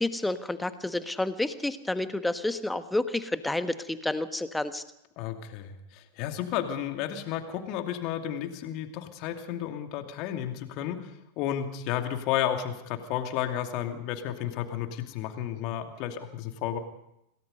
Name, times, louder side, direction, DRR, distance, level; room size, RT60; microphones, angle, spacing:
voice 1, 0.0-4.8, left 2 dB, 5° left, 11 dB, 1.3 m, -30 dB
voice 2, 5.2-11.1 11.4-16.8, left 10 dB, 40° left, 6 dB, 2.6 m, -32 dB
27.0 x 18.5 x 5.4 m, 0.82 s
figure-of-eight pair, 90°, 0 cm